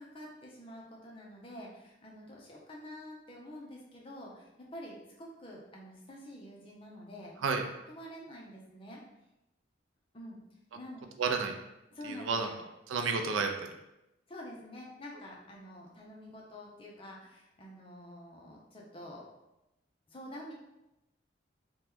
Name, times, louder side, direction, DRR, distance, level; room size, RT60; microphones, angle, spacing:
voice 1, 0.0-7.3 7.9-9.0 10.1-10.4 10.7-11.1 11.9-12.6 14.3-19.3 20.1-20.5, left 1 dB, 25° left, -3 dB, 0.5 m, -47 dB
voice 2, 11.2-11.5 12.0-12.5 12.9-13.7, right 5 dB, 80° right, 4 dB, 0.4 m, -31 dB
2.8 x 2.2 x 3.5 m, 0.91 s
head